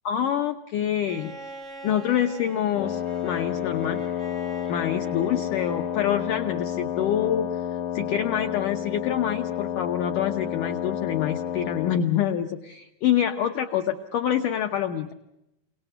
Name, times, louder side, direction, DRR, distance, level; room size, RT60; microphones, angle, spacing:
voice 1, 0.1-1.3 1.8-4.1 4.7-7.6 7.9-15.1, left 10 dB, 85° left, 5 dB, 1.8 m, -26 dB
Bowed string instrument, 1.0-6.1 7.5-7.6, right 2 dB, 20° right, 3.2 m, -44 dB
Wind instrument woodwind instrument, 2.7-12.1, left 10 dB, 65° left, 2.0 m, -30 dB
28.5 x 18.5 x 8.0 m, 0.89 s
omnidirectional pair, 5.1 m